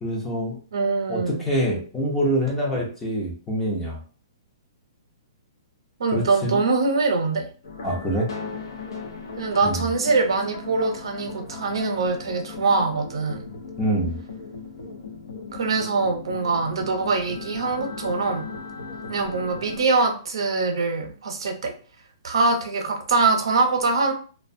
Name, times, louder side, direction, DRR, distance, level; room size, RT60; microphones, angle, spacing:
voice 1, 0.0-0.6 1.1-4.0 6.1-6.6 7.8-8.3 9.6-9.8 13.8-14.2, equal, 10° left, -2 dB, 0.5 m, -25 dB
voice 2, 0.7-1.5 6.0-7.5 9.4-13.5 15.5-18.5 19.1-21.7 22.2-24.1, right 3 dB, 80° right, 4 dB, 0.7 m, -23 dB
sound 1, 7.6-19.8, left 4 dB, 65° left, 0.5 m, -37 dB
2.5 x 2.1 x 2.5 m, 0.39 s
hypercardioid pair, 170°, 3 cm